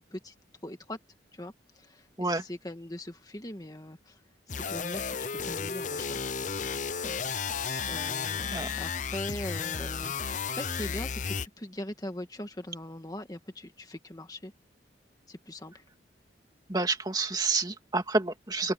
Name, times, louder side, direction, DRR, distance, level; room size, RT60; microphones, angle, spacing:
voice 1, 0.6-1.0 1.3-4.2 4.5-5.2 5.4-6.2 7.0-7.2 7.9-14.5 15.3-15.8, left 1 dB, 20° left, 2.0 m, -41 dB
sound 1, 4.5-11.5, left 6 dB, 40° left, 0.7 m, -33 dB
voice 2, 16.7-18.7, right 3 dB, 20° right, 2.4 m, -29 dB
open air
head